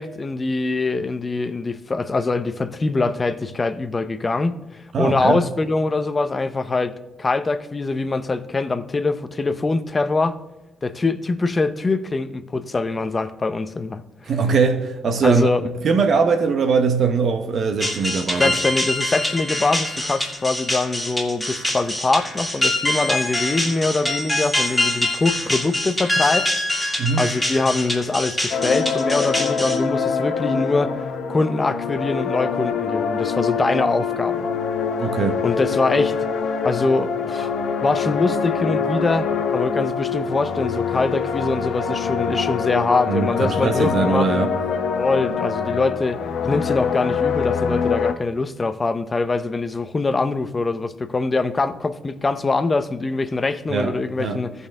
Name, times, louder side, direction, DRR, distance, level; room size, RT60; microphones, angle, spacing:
voice 1, 0.0-10.4 10.8-14.3 15.2-15.6 18.4-26.6 27.2-31.0 31.3-34.5 35.4-36.2 36.6-37.5 37.8-44.3 45.0-46.2 46.4-54.5, left 3 dB, 25° left, 0.6 m, -23 dB
voice 2, 4.9-5.4 14.3-15.5 15.8-18.6 27.0-27.3 35.0-35.4 43.1-44.6 53.7-54.4, right 5 dB, 55° right, 0.8 m, -21 dB
sound 1, 17.8-29.8, left 1 dB, 5° left, 1.9 m, -24 dB
sound 2, 28.5-48.1, left 6 dB, 70° left, 0.8 m, -24 dB
14.5 x 5.4 x 3.5 m
cardioid pair, 90°, 0 cm